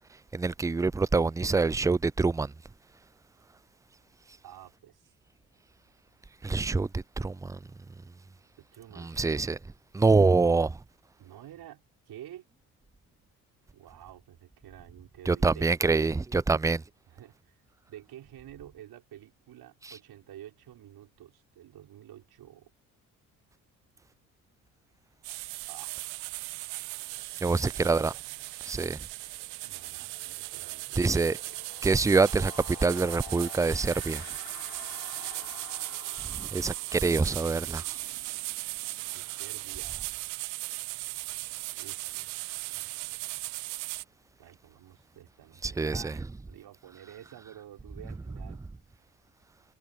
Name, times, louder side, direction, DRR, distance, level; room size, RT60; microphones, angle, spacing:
voice 1, 0.3-2.5 6.4-7.6 9.0-9.6 9.9-10.8 15.2-16.8 19.8-20.0 27.4-28.1 28.6-29.0 31.0-31.4 31.8-34.2 36.3-37.8 45.6-46.2 48.5-48.6, right 3 dB, 10° right, 0.4 m, -25 dB
voice 2, 4.4-5.1 8.6-9.4 11.2-12.5 13.7-16.1 16.5-16.6 17.1-17.6 17.9-22.7 25.7-26.0 27.6-28.2 29.6-31.3 39.1-40.1 41.8-42.2 42.7-42.9 44.4-48.6 48.9-49.0, right 12 dB, 60° right, 4.9 m, -50 dB
sound 1, 25.2-44.0, right 25 dB, 80° right, 1.3 m, -38 dB
sound 2, 29.4-29.5 29.8-40.4, left 16 dB, 70° left, 5.7 m, -50 dB
hypercardioid pair, 55°, 42 cm